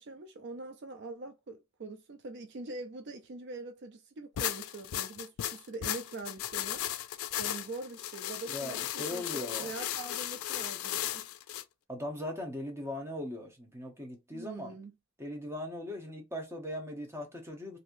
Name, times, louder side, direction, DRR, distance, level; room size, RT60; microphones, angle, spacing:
voice 1, 0.0-6.9 7.4-11.3 14.3-14.9, right 3 dB, 55° right, 0.4 m, -43 dB
sound 1, 4.4-11.6, left 12 dB, 90° left, 0.4 m, -36 dB
voice 2, 8.5-9.7 11.9-14.7 15.2-17.8, left 1 dB, 10° right, 0.9 m, -39 dB
3.1 x 2.7 x 2.6 m
head